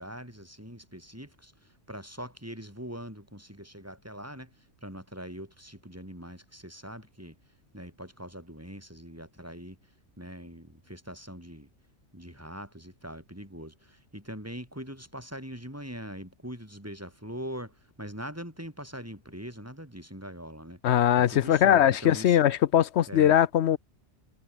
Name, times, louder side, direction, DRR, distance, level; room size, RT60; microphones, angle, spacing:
voice 1, 0.0-7.4 7.7-9.8 10.2-11.7 12.1-22.4 23.1-23.3, equal, 10° right, 7.9 m, -42 dB
voice 2, 20.8-23.8, left 10 dB, 65° left, 0.9 m, -21 dB
omnidirectional pair, 1.3 m